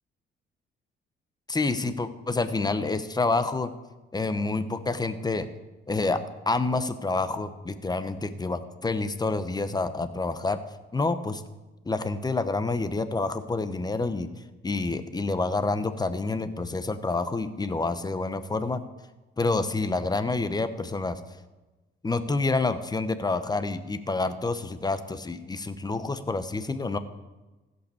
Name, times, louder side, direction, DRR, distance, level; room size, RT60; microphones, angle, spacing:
voice 1, 1.5-3.7 4.1-5.5 5.9-10.6 10.9-11.4 11.8-14.3 14.6-18.8 19.4-21.2 22.0-27.0, left 3 dB, 20° left, 11 dB, 0.9 m, -28 dB
15.0 x 5.5 x 6.9 m, 1.1 s
cardioid pair, 90°, 20 cm